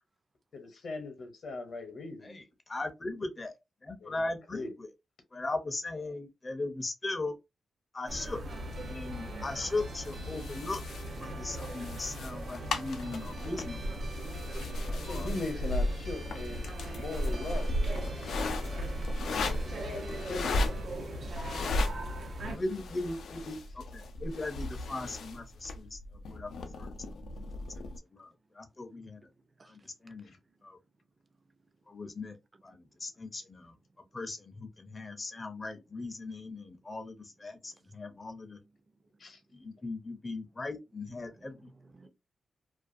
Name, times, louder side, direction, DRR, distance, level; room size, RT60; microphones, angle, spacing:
voice 1, 0.5-2.4 4.0-4.7 14.9-17.8 19.0-20.8 39.2-39.4, left 3 dB, 70° left, 0.8 m, -40 dB
voice 2, 2.2-3.5 3.8-4.9 5.3-7.4 7.9-8.4 8.9-10.8 11.2-14.0 15.0-15.3 22.4-26.0 26.3-26.5 26.8-27.4 28.1-29.2 29.7-30.3 30.6-30.8 31.9-32.3 32.6-33.7 34.1-38.6 39.5-41.6, left 2 dB, 30° left, 0.5 m, -38 dB
sound 1, 8.1-22.6, equal, 85° right, 0.8 m, -41 dB
sound 2, 8.5-20.9, right 3 dB, 60° right, 1.1 m, -51 dB
sound 3, 10.0-28.0, left 1 dB, 90° left, 0.4 m, -36 dB
voice 3, 29.2-30.2 30.5-30.7 32.7-32.8 33.1-33.3 34.0-34.1 35.1-35.2 35.6-35.7 37.6-37.9 38.6-38.9 41.2-42.1, right 3 dB, 35° right, 0.5 m, -62 dB
2.4 x 2.2 x 2.5 m
cardioid pair, 95°, 0 cm